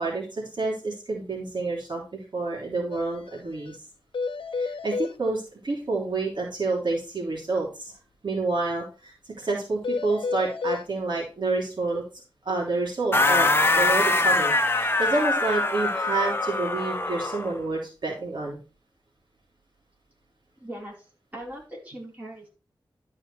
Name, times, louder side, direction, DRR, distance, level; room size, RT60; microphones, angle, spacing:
voice 1, 0.0-3.8 4.6-7.9 8.2-12.0 12.4-18.6, right 3 dB, 60° right, -2 dB, 3.4 m, -29 dB
sound 1, 2.9-3.0 3.3-3.4 3.7-3.8 4.1-5.1 9.8-10.8, left 4 dB, 90° left, 0.6 m, -30 dB
sound 2, 13.1-17.5, left 2 dB, 25° left, 0.9 m, -23 dB
voice 2, 20.6-21.1 21.3-22.5, right 1 dB, 20° right, -3 dB, 4.8 m, -40 dB
12.5 x 4.9 x 4.6 m, 0.33 s
wide cardioid pair, 85°, 9 cm